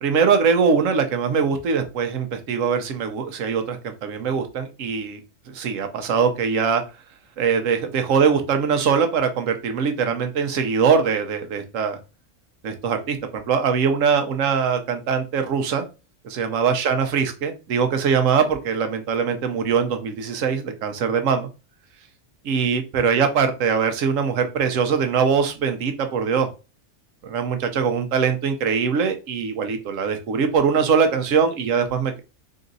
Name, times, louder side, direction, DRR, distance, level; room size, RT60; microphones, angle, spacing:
voice 1, 0.0-5.2 5.5-6.8 7.4-12.0 12.6-15.8 16.2-21.5 22.4-26.5 27.2-32.2, right 6 dB, 85° right, 7 dB, 1.1 m, -22 dB
3.8 x 2.7 x 3.9 m, 0.30 s
omnidirectional pair, 1.3 m